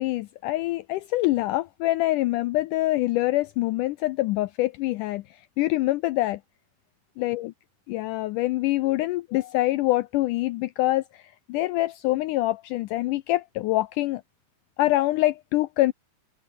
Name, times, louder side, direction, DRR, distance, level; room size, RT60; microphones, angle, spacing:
voice 1, 0.0-5.2 5.6-6.4 7.2-7.5 7.9-11.2 11.5-14.2 14.8-15.9, left 17 dB, 80° left, 1.9 m, -25 dB
open air
omnidirectional pair, 4.1 m